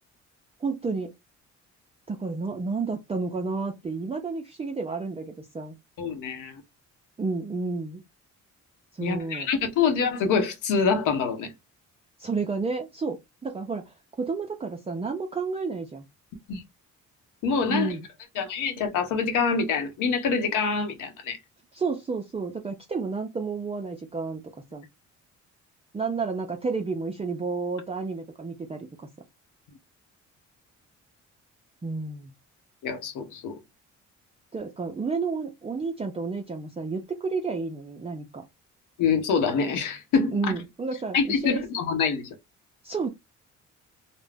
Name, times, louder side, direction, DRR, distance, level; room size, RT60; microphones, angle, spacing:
voice 1, 0.6-1.1 2.1-5.8 7.2-8.0 8.9-9.5 12.2-16.1 17.7-18.1 21.7-24.4 24.7-24.9 25.9-29.1 31.8-32.3 34.5-38.5 40.3-41.6 42.8-43.1, right 4 dB, 20° right, 0.5 m, -31 dB
voice 2, 6.0-6.6 9.0-11.5 16.5-16.6 17.4-17.9 18.4-21.4 32.8-33.6 39.0-40.4 41.1-42.3, left 5 dB, 85° left, 0.9 m, -25 dB
2.5 x 2.1 x 3.3 m
cardioid pair, 90°, 30 cm